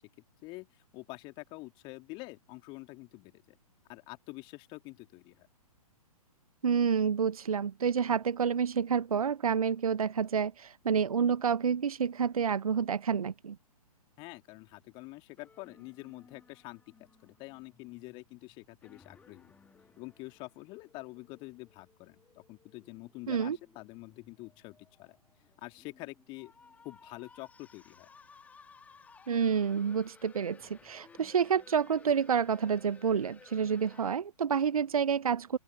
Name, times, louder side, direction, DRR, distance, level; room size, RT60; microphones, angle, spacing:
voice 1, 0.9-3.6 3.9-5.5 14.2-16.8 17.2-19.5 20.0-22.2 22.5-25.2 25.6-26.5 26.8-28.1, left 23 dB, 25° left, 2.7 m, -46 dB
voice 2, 6.6-13.6 23.3-23.6 29.3-35.6, right 7 dB, 65° right, 0.6 m, -29 dB
sound 1, 15.4-34.1, left 5 dB, 5° left, 1.3 m, -59 dB
figure-of-eight pair, 120°, 20 cm